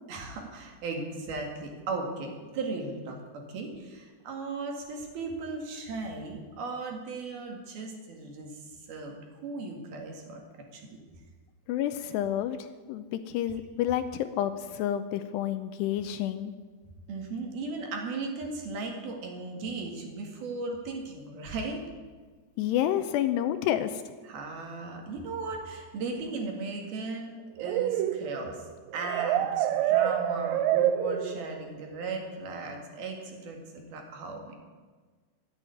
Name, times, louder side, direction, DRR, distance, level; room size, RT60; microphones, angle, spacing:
voice 1, 0.1-3.2 3.5-10.4 10.7-11.0 17.1-21.8 24.2-27.3 27.6-28.6 28.9-34.6, right 3 dB, 60° right, 1 dB, 3.7 m, -37 dB
voice 2, 11.7-16.5 22.6-24.0, left 11 dB, 80° left, 10 dB, 2.6 m, -29 dB
sound 1, 27.6-31.7, right 11 dB, 85° right, 3.0 m, -27 dB
14.0 x 9.3 x 9.5 m, 1.4 s
omnidirectional pair, 5.1 m